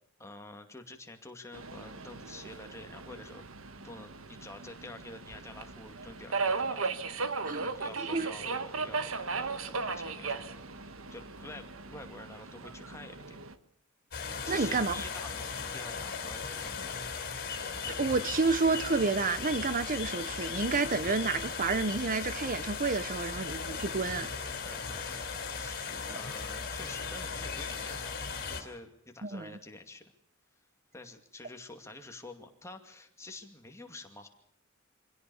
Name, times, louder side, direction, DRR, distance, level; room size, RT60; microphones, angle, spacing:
voice 1, 0.2-3.4 3.8-6.9 7.6-10.5 11.1-13.4 14.4-16.8 24.6-28.1 28.5-30.0 30.9-34.3, left 2 dB, 15° left, 2.4 m, -48 dB
Subway metro underground, 1.5-13.5, right 4 dB, 70° right, 1.5 m, -37 dB
sound 1, 14.1-28.6, left 5 dB, 50° left, 4.5 m, -37 dB
voice 2, 14.5-14.9 17.9-24.3 26.1-26.2 29.2-29.5, right 4 dB, 40° right, 0.8 m, -30 dB
25.5 x 17.0 x 7.1 m
head